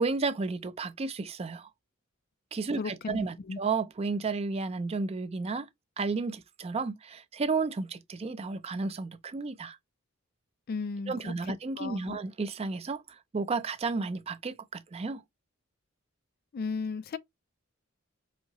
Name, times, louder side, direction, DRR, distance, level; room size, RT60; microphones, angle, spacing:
voice 1, 0.0-1.7 2.5-5.7 6.0-9.8 11.1-15.2, right 4 dB, 30° right, 0.4 m, -32 dB
voice 2, 2.8-3.6 10.7-12.2 16.5-17.2, left 4 dB, 45° left, 0.3 m, -36 dB
4.9 x 2.7 x 2.9 m
head